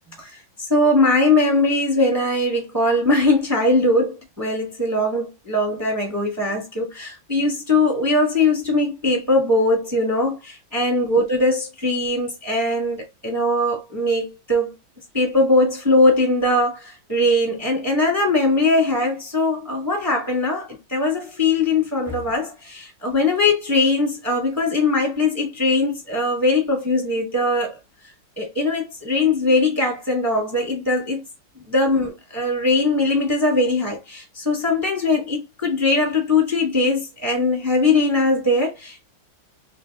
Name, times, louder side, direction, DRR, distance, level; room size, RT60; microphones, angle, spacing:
voice 1, 0.2-14.7 15.1-27.8 28.4-31.2 31.6-39.0, left 2 dB, 15° right, 0.9 m, -20 dB
3.3 x 2.5 x 3.3 m
omnidirectional pair, 2.1 m